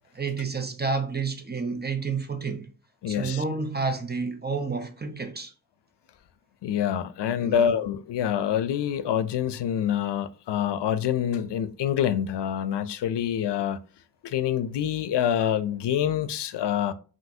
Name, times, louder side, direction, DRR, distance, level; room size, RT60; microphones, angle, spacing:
voice 1, 0.1-2.7 3.1-5.5 7.4-7.7, right 4 dB, 25° right, 0.7 m, -30 dB
voice 2, 3.0-3.4 6.6-13.8 14.2-16.9, left 9 dB, 85° left, 0.5 m, -26 dB
5.5 x 2.8 x 2.7 m
wide cardioid pair, 105°, 41 cm